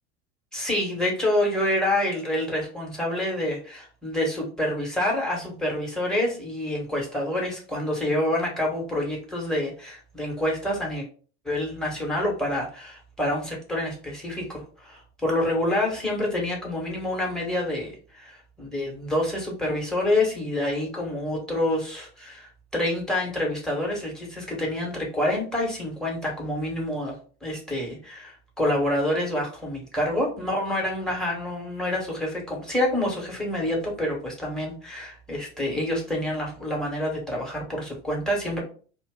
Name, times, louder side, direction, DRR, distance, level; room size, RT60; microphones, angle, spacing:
voice 1, 0.5-11.0 11.4-17.9 18.6-27.1 27.4-38.6, left 1 dB, ahead, -2 dB, 1.3 m, -27 dB
2.5 x 2.2 x 3.6 m, 0.41 s
hypercardioid pair, 80°, 34 cm